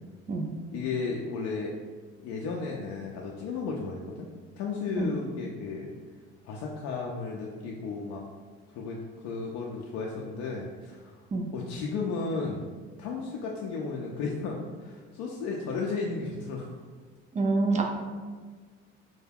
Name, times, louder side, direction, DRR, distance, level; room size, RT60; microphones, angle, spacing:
voice 1, 0.7-1.7 2.2-4.3 4.6-5.9 6.4-8.2 8.7-11.2 11.5-12.7 13.0-16.7, left 4 dB, 60° left, -2 dB, 0.4 m, -34 dB
voice 2, 17.3-17.8, right 3 dB, 25° right, 2 dB, 0.4 m, -26 dB
2.2 x 2.2 x 3.3 m, 1.4 s
supercardioid pair, 75°, 29 cm